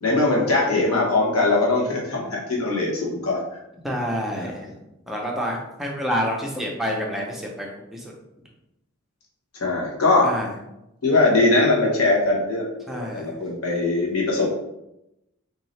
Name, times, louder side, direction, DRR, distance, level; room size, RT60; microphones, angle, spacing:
voice 1, 0.0-3.6 4.4-4.5 9.5-10.3 11.0-14.5, left 2 dB, 90° left, -3 dB, 1.1 m, -21 dB
voice 2, 3.8-4.8 5.1-8.1 10.2-10.5 12.9-13.4, equal, ahead, -2 dB, 0.6 m, -28 dB
3.9 x 2.7 x 3.2 m, 0.88 s
head